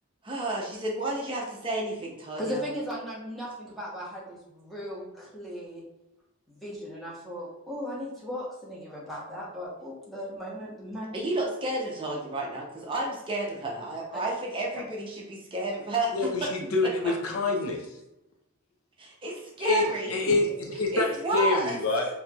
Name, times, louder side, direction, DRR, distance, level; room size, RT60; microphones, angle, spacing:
voice 1, 0.2-2.6 11.1-16.5 16.8-17.1 19.0-20.4 20.9-21.7, right 2 dB, 25° right, -2 dB, 0.6 m, -31 dB
voice 2, 2.4-5.8 6.5-11.1, equal, ahead, -6 dB, 0.9 m, -37 dB
voice 3, 16.1-17.9 19.6-22.1, left 3 dB, 80° left, 2 dB, 0.6 m, -27 dB
4.3 x 2.7 x 2.3 m, 0.92 s
head